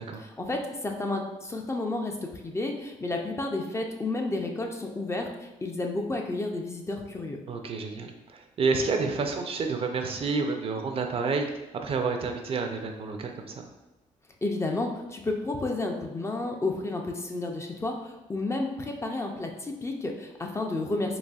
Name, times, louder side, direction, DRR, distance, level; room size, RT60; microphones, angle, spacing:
voice 1, 0.2-7.4 14.4-21.2, left 2 dB, 20° left, 2 dB, 0.4 m, -31 dB
voice 2, 7.5-11.5 11.8-13.6, right 4 dB, 45° right, 4 dB, 0.4 m, -29 dB
4.0 x 2.8 x 2.3 m, 1.0 s
cardioid pair, 90°, 13 cm